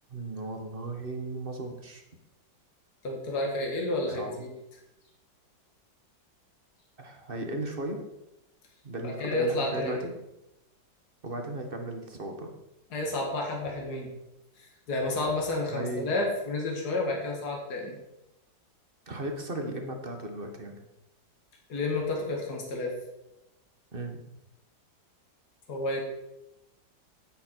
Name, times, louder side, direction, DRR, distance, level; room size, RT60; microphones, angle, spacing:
voice 1, 0.1-2.0 4.1-4.3 7.0-8.1 8.8-10.1 11.2-12.6 15.7-16.2 19.1-20.8 23.9-24.2, right 2 dB, 35° right, 4 dB, 1.3 m, -36 dB
voice 2, 3.0-4.5 9.0-10.0 12.9-14.1 14.6-18.0 21.7-22.9 25.7-26.0, left 2 dB, 55° left, 0 dB, 2.5 m, -30 dB
9.4 x 9.3 x 4.5 m, 0.90 s
omnidirectional pair, 2.0 m